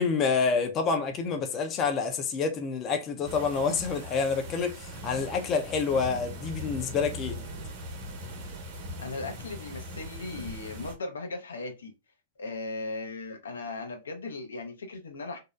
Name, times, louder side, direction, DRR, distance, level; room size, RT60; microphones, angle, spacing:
voice 1, 0.0-7.4, left 5 dB, 30° left, 0.5 m, -28 dB
sound 1, 3.3-11.0, equal, 55° right, 0.9 m, -40 dB
voice 2, 9.0-11.9 12.4-15.4, left 3 dB, 80° left, 0.6 m, -37 dB
2.6 x 2.0 x 2.3 m
hypercardioid pair, 110°, 0 cm